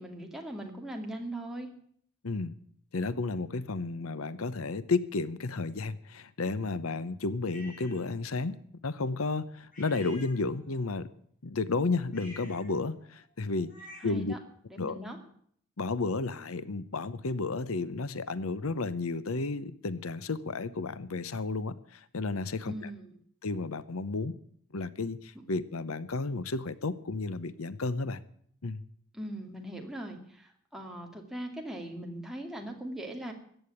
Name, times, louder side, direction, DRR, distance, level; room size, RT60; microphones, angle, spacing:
voice 1, 0.0-1.7 14.0-14.4 14.7-15.2 22.7-23.1 29.1-33.3, right 1 dB, ahead, 1 dB, 2.4 m, -40 dB
voice 2, 2.2-2.6 2.9-8.6 8.8-11.1 11.4-13.7 14.0-14.4 14.8-15.0 15.8-22.9 23.4-24.3 24.7-28.2 28.6-28.8, left 3 dB, 85° left, 16 dB, 0.8 m, -32 dB
sound 1, 7.5-8.0 9.7-10.8 12.0-14.3, left 1 dB, 40° left, 6.8 m, -51 dB
14.5 x 9.0 x 9.8 m, 0.63 s
head